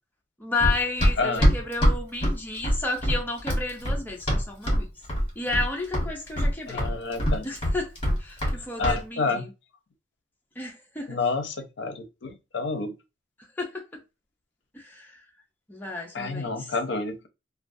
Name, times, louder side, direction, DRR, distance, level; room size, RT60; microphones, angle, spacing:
voice 1, 0.4-4.9 5.4-6.9 7.4-7.9 8.2-9.4 10.6-11.2 13.6-14.0 14.7-15.2 15.7-16.7, left 3 dB, 10° left, 0.5 m, -32 dB
Run, 0.6-4.8 5.1-5.7 5.9-8.6 8.8-9.0, equal, 30° left, 1.1 m, -23 dB
voice 2, 1.2-1.5 6.7-7.5 8.8-9.5 11.1-12.9 16.1-17.3, left 3 dB, 70° left, 0.5 m, -29 dB
2.3 x 2.2 x 2.5 m
head